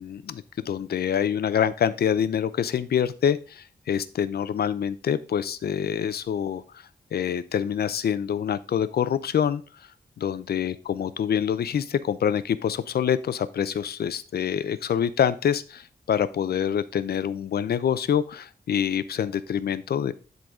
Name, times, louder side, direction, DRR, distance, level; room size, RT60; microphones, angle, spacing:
voice 1, 0.0-6.6 7.1-9.6 10.2-20.1, left 8 dB, 75° left, 15 dB, 0.6 m, -26 dB
10.5 x 4.0 x 4.9 m, 0.37 s
wide cardioid pair, 120°, 16 cm